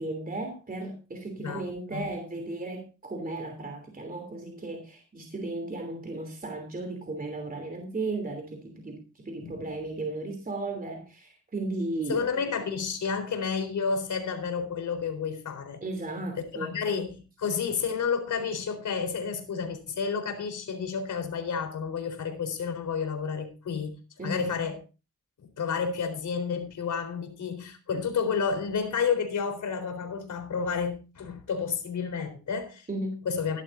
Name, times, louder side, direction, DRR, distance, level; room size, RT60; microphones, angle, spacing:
voice 1, 0.0-12.2 15.8-16.8 24.2-24.4 32.9-33.2, right 2 dB, 30° right, 3.1 m, -35 dB
voice 2, 9.4-9.7 12.1-15.8 16.5-24.8 25.6-32.9 33.3-33.6, left 6 dB, 85° left, 4.0 m, -30 dB
17.5 x 12.0 x 2.6 m
wide cardioid pair, 120°, 29 cm